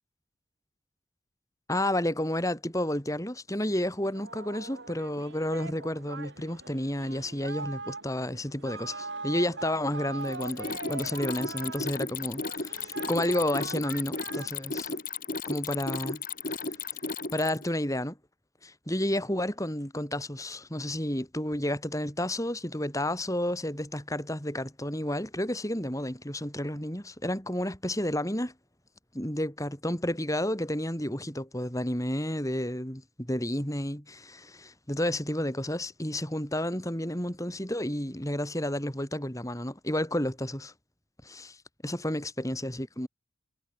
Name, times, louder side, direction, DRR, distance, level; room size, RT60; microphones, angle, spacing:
voice 1, 1.7-15.0 15.5-16.5 17.3-18.2 18.6-28.5 29.1-40.7 41.2-41.6 41.8-43.1, left 1 dB, 15° left, 5.6 m, -31 dB
Singing, 4.0-15.0, right 3 dB, 60° right, 4.6 m, -42 dB
Mechanisms, 10.2-17.7, left 4 dB, 45° left, 7.2 m, -34 dB
head